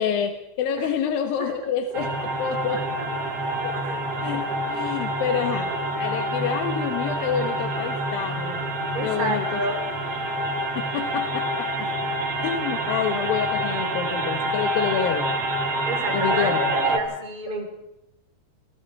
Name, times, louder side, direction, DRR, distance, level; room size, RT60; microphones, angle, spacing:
voice 1, 0.0-2.1 2.4-2.8 3.6-3.7 4.2-5.7 6.0-8.6 9.0-9.6 10.8-11.7 12.4-15.3 16.1-16.6, left 8 dB, 85° left, 6 dB, 3.1 m, -27 dB
sound 1, 1.9-17.0, right 1 dB, 50° right, 2.7 m, -27 dB
voice 2, 8.9-9.8 15.9-17.7, right 2 dB, 15° right, 1 dB, 3.5 m, -30 dB
28.5 x 20.0 x 4.8 m, 0.91 s
omnidirectional pair, 4.0 m